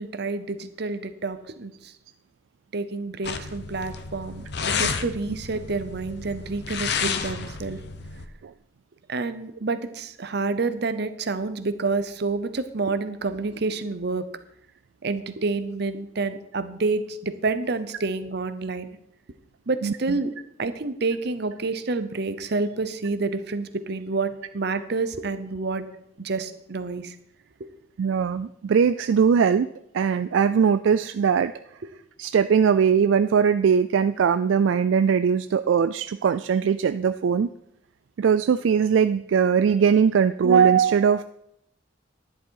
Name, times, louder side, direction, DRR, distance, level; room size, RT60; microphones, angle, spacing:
voice 1, 0.0-1.9 2.7-4.4 4.7-7.8 9.1-14.3 15.0-18.9 19.7-20.3 20.6-25.8 26.2-27.1 27.6-27.7, right 3 dB, 60° right, 12 dB, 0.8 m, -28 dB
sound 1, 3.2-8.3, left 5 dB, 60° left, 0.8 m, -31 dB
voice 2, 19.8-20.2 28.0-29.7 29.9-31.5 32.2-37.5 38.2-41.2, right 7 dB, 80° right, 12 dB, 0.3 m, -20 dB
11.0 x 10.0 x 4.6 m, 0.77 s
head